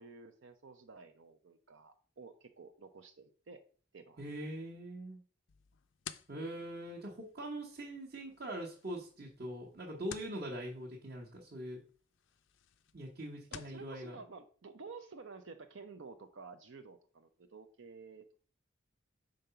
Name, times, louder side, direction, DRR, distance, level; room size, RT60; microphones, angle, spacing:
voice 1, 0.0-3.6 3.9-4.2 13.5-18.4, right 4 dB, 65° right, 7 dB, 0.6 m, -52 dB
voice 2, 4.2-5.2 6.3-11.8 12.9-14.1, right 1 dB, 45° right, -4 dB, 1.1 m, -42 dB
sound 1, 5.5-13.8, left 9 dB, 65° left, 0.4 m, -54 dB
5.2 x 3.8 x 5.6 m, 0.43 s
head